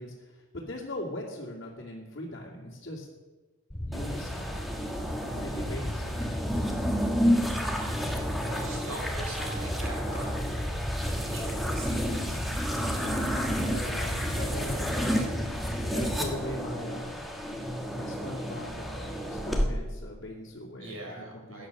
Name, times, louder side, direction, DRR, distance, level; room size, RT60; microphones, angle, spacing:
voice 1, 0.0-3.1 3.8-4.5 5.2-6.1 13.6-15.2 15.8-17.2 17.9-21.7, left 1 dB, 50° left, -6 dB, 2.7 m, -40 dB
sound 1, 3.7-16.3, equal, 25° left, 4.0 m, -35 dB
sound 2, 3.9-19.7, equal, ahead, 1.6 m, -31 dB
voice 2, 6.9-10.4 11.2-12.1 12.5-12.7 20.8-21.7, right 1 dB, 85° right, -1 dB, 6.0 m, -43 dB
16.5 x 10.0 x 6.6 m, 1.3 s
head